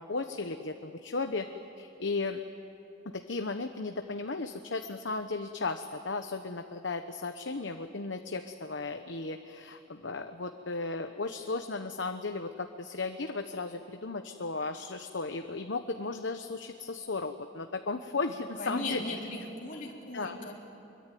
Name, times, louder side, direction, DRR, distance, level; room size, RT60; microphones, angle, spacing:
voice 1, 0.0-1.5 1.8-2.4 3.1-19.0 20.1-20.4, left 3 dB, 75° left, 6 dB, 1.1 m, -35 dB
voice 2, 18.6-20.5, left 2 dB, 45° left, -3 dB, 3.8 m, -37 dB
25.0 x 23.0 x 9.4 m, 3.0 s
head